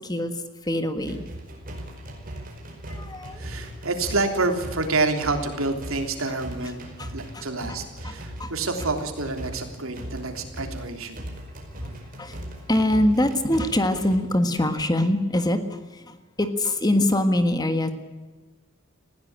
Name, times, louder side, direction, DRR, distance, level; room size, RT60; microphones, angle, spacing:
voice 1, 0.7-1.2 2.9-3.6 7.0-7.1 7.3-7.4 8.0-8.5 12.2-12.4 12.7-15.6 16.4-17.9, left 1 dB, 20° left, 8 dB, 1.5 m, -23 dB
sound 1, 1.0-14.2, equal, 40° right, 4.9 m, -38 dB
voice 2, 3.4-6.8 7.1-11.2, right 3 dB, 75° right, 5 dB, 3.3 m, -28 dB
20.0 x 16.0 x 8.8 m, 1.3 s
head